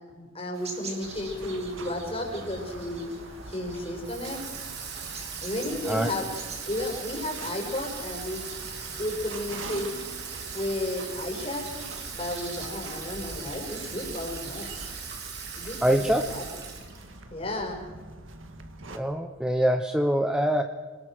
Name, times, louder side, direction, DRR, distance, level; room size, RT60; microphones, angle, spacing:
voice 1, 0.1-3.1 3.5-4.4 5.4-6.2 6.7-8.4 9.0-9.9 10.5-11.6 12.1-14.7 15.5-16.0 16.3-16.4 17.3-17.8, left 1 dB, 30° left, 1 dB, 5.3 m, -33 dB
sound 1, 0.5-15.1, right 3 dB, 30° right, 4.3 m, -47 dB
sound 2, 1.0-19.0, right 2 dB, 75° right, 2.2 m, -44 dB
Water tap faucet / Sink (filling or washing), 4.0-17.2, right 6 dB, 55° right, 4.0 m, -39 dB
voice 2, 15.8-16.4 18.9-20.6, equal, 5° right, 6 dB, 0.9 m, -24 dB
27.5 x 19.5 x 6.3 m, 1.4 s
head